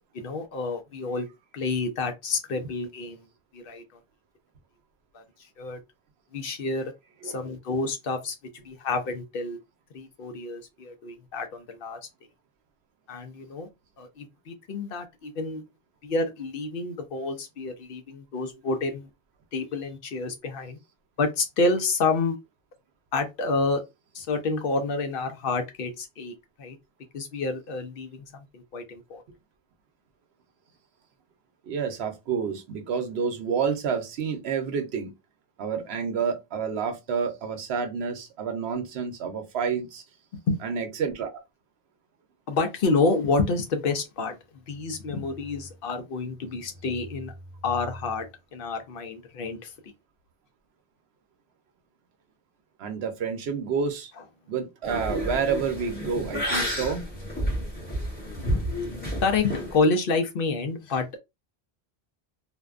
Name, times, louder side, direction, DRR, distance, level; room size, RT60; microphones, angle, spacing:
voice 1, 0.1-1.3 1.5-3.2 3.5-3.8 5.1-5.2 5.6-5.8 6.3-6.9 7.2-8.3 8.6-9.6 9.9-12.0 13.1-13.7 14.0-15.6 16.0-19.1 19.5-20.8 21.2-22.4 23.1-23.8 24.1-26.8 27.1-29.2 40.5-40.6 42.5-44.4 44.7-47.3 47.6-48.3 48.5-49.7 59.2-61.2, left 3 dB, 65° left, 0.7 m, -28 dB
voice 2, 31.7-35.1 35.6-40.0 40.6-41.4 52.8-54.1 54.5-57.0, right 6 dB, 75° right, 0.9 m, -29 dB
sound 1, 54.8-59.8, equal, 10° left, 0.9 m, -30 dB
2.5 x 2.2 x 2.3 m
omnidirectional pair, 1.1 m